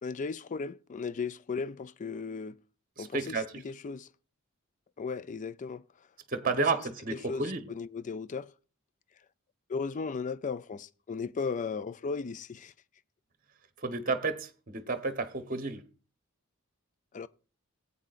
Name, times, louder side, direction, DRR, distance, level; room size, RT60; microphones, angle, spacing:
voice 1, 0.0-2.6 3.0-4.1 5.0-6.1 6.6-6.7 7.1-8.5 9.7-12.7 17.1-17.3, left 5 dB, 35° left, 0.4 m, -36 dB
voice 2, 3.0-3.5 6.3-7.6 13.8-15.8, right 3 dB, 40° right, 1.0 m, -31 dB
18.5 x 8.5 x 2.5 m
head